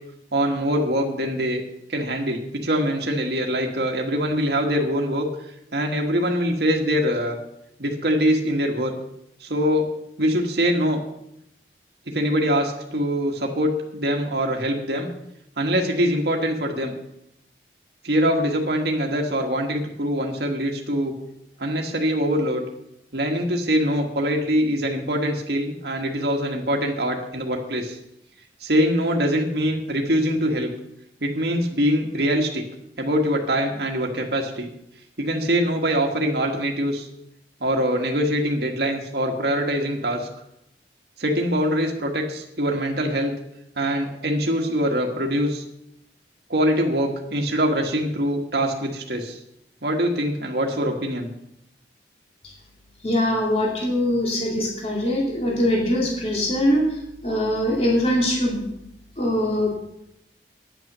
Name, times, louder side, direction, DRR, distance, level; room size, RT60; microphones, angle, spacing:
voice 1, 0.3-1.6 1.9-5.3 5.7-7.4 7.8-8.9 9.4-9.9 10.2-11.0 12.1-15.1 15.6-16.9 18.0-21.2 21.6-22.6 23.1-28.0 28.6-30.7 31.2-32.7 33.0-34.7 35.2-37.1 37.6-40.3 41.2-43.3 43.8-45.6 46.5-49.4 49.8-51.3, equal, 65° right, 1 dB, 1.5 m, -23 dB
voice 2, 53.0-58.7 59.2-59.8, left 1 dB, 35° left, -2 dB, 2.6 m, -22 dB
9.4 x 8.9 x 6.7 m, 0.80 s
head